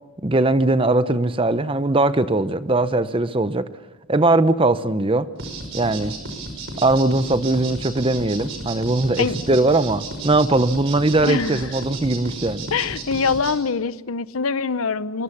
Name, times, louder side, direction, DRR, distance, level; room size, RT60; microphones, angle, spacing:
voice 1, 0.2-3.7 4.1-5.3 5.7-6.1 6.8-12.7, right 2 dB, 25° right, 13 dB, 0.8 m, -20 dB
sound 1, 5.4-13.5, right 3 dB, 60° right, 5.6 m, -33 dB
voice 2, 11.2-11.7 12.7-15.2, left 5 dB, 75° left, 15 dB, 0.8 m, -24 dB
23.5 x 23.0 x 7.2 m, 1.1 s
head